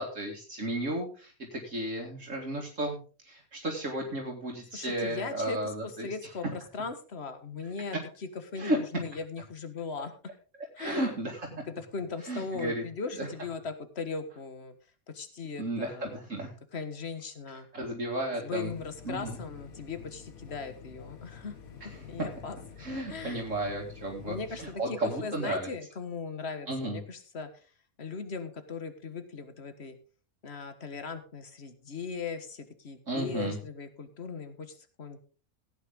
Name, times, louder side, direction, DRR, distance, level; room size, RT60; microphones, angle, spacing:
voice 1, 0.0-3.0 3.2-6.1 8.6-8.8 10.8-11.5 12.3-12.8 13.2-13.3 15.6-16.5 17.7-18.7 19.1-19.4 22.8-25.7 26.7-27.0 33.1-33.6, right 1 dB, 60° right, 0 dB, 2.5 m, -33 dB
voice 2, 4.7-10.1 10.7-11.1 11.7-14.8 15.1-16.3 16.7-17.7 18.4-21.5 22.1-22.6 23.1-23.4 24.3-27.7 28.0-30.0 30.4-35.3, left 5 dB, 50° left, 9 dB, 1.8 m, -39 dB
sound 1, 18.7-24.7, left 6 dB, 80° left, 1.9 m, -48 dB
16.0 x 9.2 x 3.7 m, 0.37 s
omnidirectional pair, 1.5 m